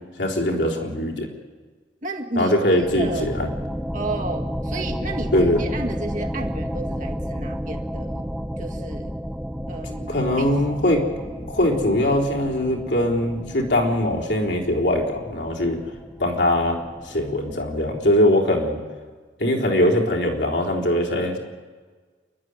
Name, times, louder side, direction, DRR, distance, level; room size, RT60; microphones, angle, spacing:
voice 1, 0.2-1.3 2.4-3.5 5.3-5.6 10.0-11.0 11.4-15.8 16.2-16.8 17.0-18.8 19.4-21.4, left 1 dB, 65° left, 0 dB, 3.8 m, -21 dB
voice 2, 2.0-2.5 2.9-3.3 3.9-5.3 5.6-8.3 8.6-9.1 9.7-10.5, right 2 dB, 45° right, 2 dB, 2.1 m, -32 dB
sound 1, 2.8-18.2, equal, 5° right, 0.8 m, -32 dB
29.0 x 12.0 x 9.6 m, 1.5 s
head